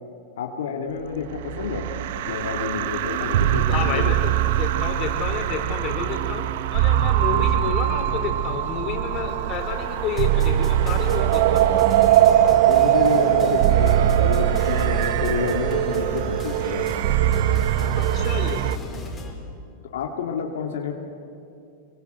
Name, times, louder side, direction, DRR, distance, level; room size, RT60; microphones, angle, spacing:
voice 1, 0.4-1.9 2.1-4.3 7.3-7.5 12.7-16.8 19.9-20.9, left 6 dB, 85° left, 1 dB, 2.3 m, -29 dB
sound 1, 1.1-18.8, right 12 dB, 70° right, 0.9 m, -21 dB
voice 2, 3.7-4.3 4.6-6.4 6.7-11.7 18.0-18.6, left 6 dB, 40° left, 3 dB, 4.4 m, -30 dB
sound 2, 10.1-19.3, left 2 dB, 20° left, 4.9 m, -37 dB
25.5 x 23.0 x 8.1 m, 2.5 s
supercardioid pair, 125°, 0 cm